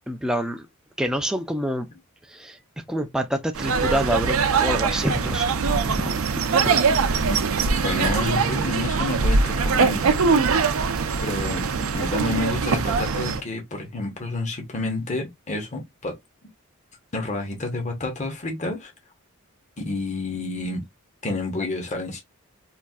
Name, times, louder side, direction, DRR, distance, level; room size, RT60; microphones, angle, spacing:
voice 1, 0.1-0.7 1.0-1.9 2.3-2.6 2.9-6.2, equal, 5° right, 0.4 m, -27 dB
sound 1, 3.6-13.4, right 4 dB, 70° right, 0.5 m, -22 dB
voice 2, 7.8-10.2 11.2-11.6 11.9-16.2 17.1-18.9 19.8-20.8 21.2-22.2, left 2 dB, 35° left, 0.9 m, -29 dB
4.1 x 2.5 x 2.3 m
head